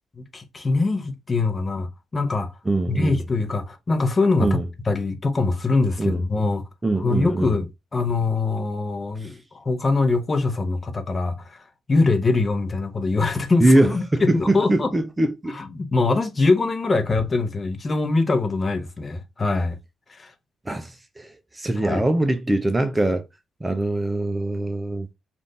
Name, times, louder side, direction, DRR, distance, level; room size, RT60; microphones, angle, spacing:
voice 1, 0.2-2.5 2.9-6.7 7.0-14.9 15.5-19.8 20.1-20.3 21.8-22.0, left 3 dB, 30° left, 0.7 m, -23 dB
voice 2, 2.7-3.2 4.4-4.6 6.0-6.2 6.8-7.5 9.2-9.3 13.6-15.5 20.7-23.2 23.6-25.1, right 1 dB, 15° right, 0.5 m, -22 dB
3.3 x 2.5 x 2.6 m
cardioid pair, 90°, 0 cm